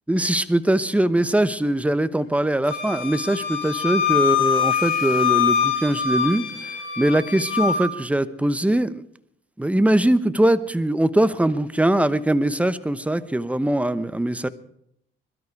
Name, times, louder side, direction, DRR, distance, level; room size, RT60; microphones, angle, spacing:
voice 1, 0.1-6.7 7.0-9.0 9.6-14.5, right 1 dB, 5° right, 14 dB, 0.9 m, -21 dB
Wind instrument woodwind instrument, 2.7-7.9, left 7 dB, 85° left, 5.5 m, -23 dB
22.0 x 12.5 x 4.7 m, 0.70 s
cardioid pair, 90°, 20 cm